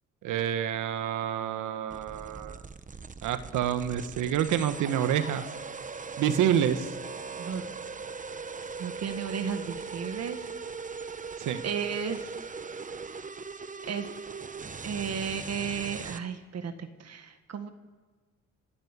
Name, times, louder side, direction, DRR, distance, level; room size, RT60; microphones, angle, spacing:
voice 1, 0.2-2.6 3.2-5.4 6.2-6.9 11.4-11.6, right 9 dB, 85° right, 10 dB, 1.4 m, -28 dB
sound 1, 1.9-16.2, right 5 dB, 25° right, 0.9 m, -40 dB
voice 2, 7.4-7.9 8.8-10.6 11.6-12.4 13.9-14.1 14.8-17.7, right 6 dB, 55° right, 8 dB, 1.7 m, -34 dB
27.0 x 12.0 x 8.2 m, 1.4 s
cardioid pair, 90°, 30 cm